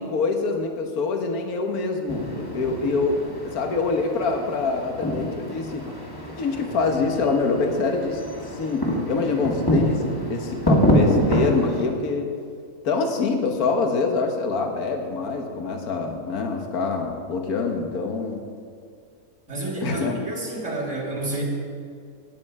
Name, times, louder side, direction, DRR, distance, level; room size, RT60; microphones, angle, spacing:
voice 1, 0.0-5.9 6.4-12.3 12.8-18.5 19.8-20.2, left 4 dB, 75° left, 4 dB, 1.7 m, -25 dB
sound 1, 2.1-11.8, equal, 15° left, 1.8 m, -26 dB
voice 2, 19.5-21.4, right 2 dB, 55° right, -2 dB, 3.0 m, -30 dB
18.5 x 7.8 x 4.8 m, 2.2 s
omnidirectional pair, 1.6 m